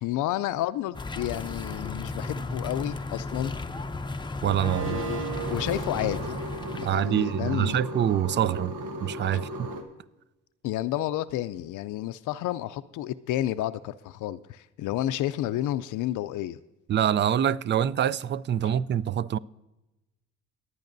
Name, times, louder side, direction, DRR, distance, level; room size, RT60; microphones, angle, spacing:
voice 1, 0.0-3.5 4.8-6.3 6.8-7.8 10.6-16.6, left 13 dB, 80° left, 0.5 m, -31 dB
sound 1, 0.9-7.1, left 3 dB, 15° left, 0.6 m, -34 dB
voice 2, 4.4-5.0 6.8-8.7 9.0-9.7 16.9-19.4, right 10 dB, 40° right, 0.4 m, -25 dB
sound 2, 4.6-9.8, right 2 dB, 85° right, 1.4 m, -35 dB
22.5 x 9.4 x 2.6 m
cardioid pair, 90°, 30 cm